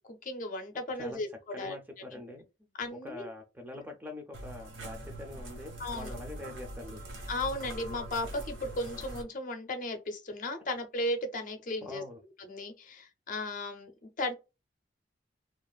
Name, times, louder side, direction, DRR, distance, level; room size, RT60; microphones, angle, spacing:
voice 1, 0.2-2.2 2.8-3.3 5.8-6.1 7.3-12.0 12.4-13.9 14.2-14.3, left 1 dB, 45° left, 0.6 m, -35 dB
voice 2, 1.5-2.5 3.0-7.0 11.8-12.2, left 2 dB, 10° right, 0.4 m, -44 dB
sound 1, 4.3-9.2, right 1 dB, 85° right, 1.1 m, -43 dB
2.4 x 2.4 x 2.2 m
head